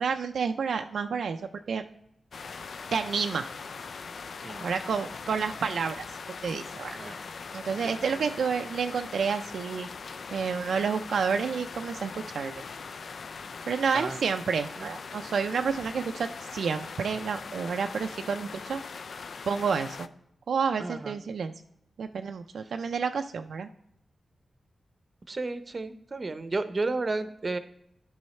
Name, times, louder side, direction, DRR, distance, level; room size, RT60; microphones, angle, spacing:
voice 1, 0.0-1.4 1.7-1.8 2.9-3.5 4.6-7.0 7.5-9.9 10.3-12.5 13.7-18.8 19.5-20.1 20.5-21.5 22.0-23.7, right 6 dB, 85° right, 6 dB, 0.4 m, -29 dB
sound 1, 2.3-20.1, left 5 dB, 70° left, 0.4 m, -41 dB
voice 2, 7.7-8.2 13.9-14.2 14.8-14.9 20.8-21.2 25.3-27.6, right 3 dB, 45° right, 11 dB, 0.6 m, -33 dB
9.5 x 5.5 x 4.2 m, 0.76 s
cardioid pair, 60°, 0 cm